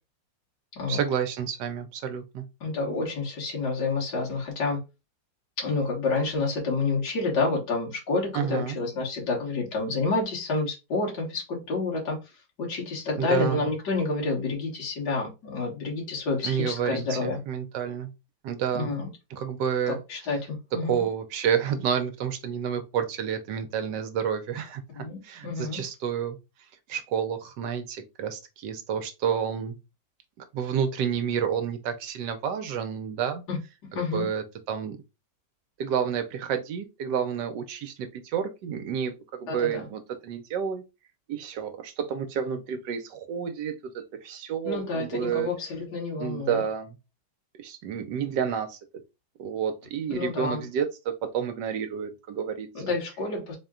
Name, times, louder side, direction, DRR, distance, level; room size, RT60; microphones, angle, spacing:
voice 1, 0.9-2.4 8.3-8.8 13.2-13.6 16.4-18.1 18.4-18.9 19.3-20.0 20.9-26.4 26.9-29.8 30.5-33.4 34.1-35.0 35.8-39.1 39.4-40.8 41.3-43.7 44.2-45.5 46.2-47.0 47.6-48.8 49.4-52.7, right 8 dB, 75° right, 1.2 m, -29 dB
voice 2, 2.6-4.8 5.6-17.4 18.7-19.1 19.9-21.0 25.0-25.8 33.5-33.6 33.9-34.3 39.5-39.9 44.6-46.6 50.1-50.6 52.7-53.6, left 3 dB, 65° left, 2.2 m, -29 dB
4.3 x 2.2 x 3.6 m
omnidirectional pair, 2.0 m